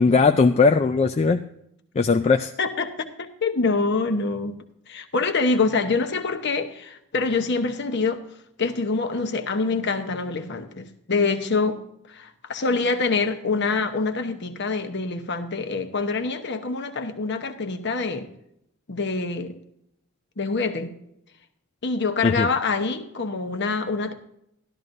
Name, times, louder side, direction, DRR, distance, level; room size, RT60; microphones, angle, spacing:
voice 1, 0.0-1.4 2.0-2.5 22.2-22.5, left 4 dB, 30° left, 6 dB, 0.3 m, -18 dB
voice 2, 2.6-8.2 8.6-11.8 12.1-18.3 18.9-19.6 20.4-20.9 21.8-24.1, left 4 dB, 50° left, 7 dB, 0.9 m, -25 dB
13.0 x 12.0 x 2.6 m, 0.75 s
head